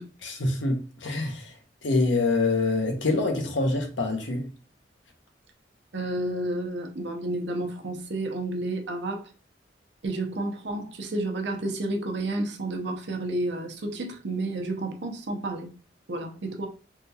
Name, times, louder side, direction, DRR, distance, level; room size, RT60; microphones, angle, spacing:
voice 1, 0.2-1.5 1.8-4.5, left 2 dB, 85° left, 0.8 m, -25 dB
voice 2, 5.9-9.3 10.0-15.7 16.1-16.7, right 2 dB, 70° right, 0.7 m, -31 dB
3.6 x 2.3 x 2.8 m
head